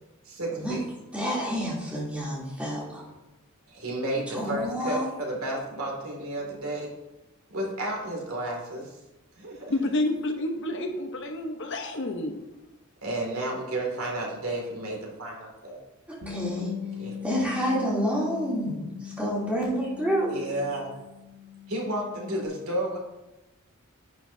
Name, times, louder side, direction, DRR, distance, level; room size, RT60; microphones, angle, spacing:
voice 1, 0.3-0.8 3.7-6.9 7.5-8.9 9.4-9.7 13.0-15.8 17.0-17.2 20.3-20.9 21.7-23.0, right 1 dB, 80° right, -1 dB, 2.4 m, -32 dB
voice 2, 1.1-3.0 4.3-5.1 16.1-16.7 17.2-20.3, equal, 5° right, -6 dB, 3.0 m, -29 dB
voice 3, 9.7-12.4, left 1 dB, 60° left, 4 dB, 1.0 m, -29 dB
Bass guitar, 16.2-22.5, left 7 dB, 50° right, 1.4 m, -40 dB
11.0 x 8.4 x 2.7 m, 1.0 s
head